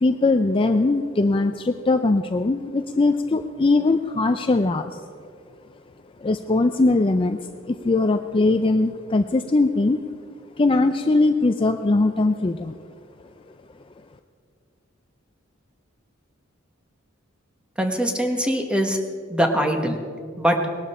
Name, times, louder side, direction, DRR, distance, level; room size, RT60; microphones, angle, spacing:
voice 1, 0.0-5.0 6.2-7.4 7.7-10.0 10.6-12.7, left 2 dB, 25° left, 7 dB, 0.4 m, -20 dB
voice 2, 17.8-19.0 19.3-20.0 20.4-20.6, equal, 5° right, 4 dB, 1.2 m, -22 dB
19.5 x 12.0 x 4.3 m, 2.2 s
head